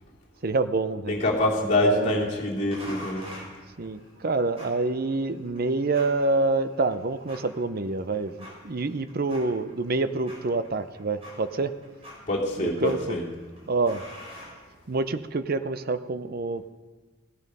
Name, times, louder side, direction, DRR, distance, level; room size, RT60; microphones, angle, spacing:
voice 1, 0.4-1.2 1.8-2.3 3.8-11.7 12.6-13.2 13.7-14.0 14.9-16.7, right 3 dB, 45° right, 12 dB, 0.6 m, -27 dB
voice 2, 1.1-3.2 12.3-13.2, left 1 dB, 35° left, -4 dB, 2.9 m, -25 dB
sound 1, 2.7-15.2, equal, 30° right, 4.9 m, -47 dB
16.5 x 11.0 x 5.4 m, 1.3 s
head